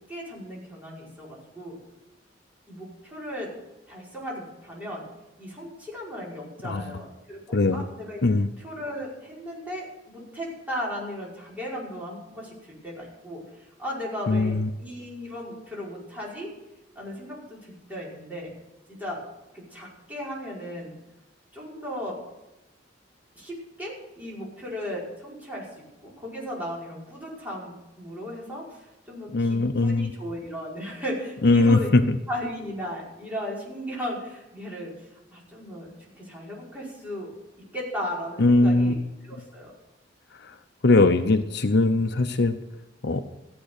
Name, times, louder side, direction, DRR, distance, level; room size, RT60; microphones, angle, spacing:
voice 1, 0.1-1.8 2.7-3.5 3.9-5.1 5.4-8.2 8.6-12.6 12.8-16.5 17.0-18.5 18.9-19.2 19.5-20.9 21.5-22.2 23.4-25.7 26.0-31.9 32.3-37.3 37.7-39.0 39.2-39.7, equal, 10° right, -5 dB, 5.4 m, -36 dB
voice 2, 7.5-7.8 8.2-8.5 14.3-14.7 29.3-30.1 31.4-32.2 38.4-39.0 40.4-40.5 40.8-42.6 43.0-43.2, left 2 dB, 60° left, 9 dB, 0.8 m, -20 dB
15.0 x 9.1 x 6.7 m, 1.0 s
head